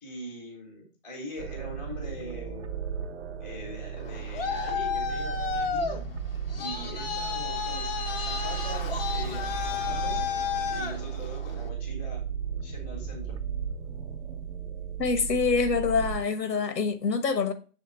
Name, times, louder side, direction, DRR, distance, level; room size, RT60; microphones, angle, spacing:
voice 1, 0.0-2.8 3.4-6.0 6.6-10.2 10.7-12.2 12.6-13.4, equal, 5° left, 0.8 m, -42 dB
sound 1, 1.4-16.2, right 7 dB, 45° right, 0.8 m, -35 dB
Traffic noise roadway noise, 4.0-11.7, left 6 dB, 35° left, 0.7 m, -32 dB
voice 2, 15.0-17.5, left 5 dB, 90° left, 1.2 m, -25 dB
6.6 x 3.5 x 4.3 m
hypercardioid pair, 160°, 48 cm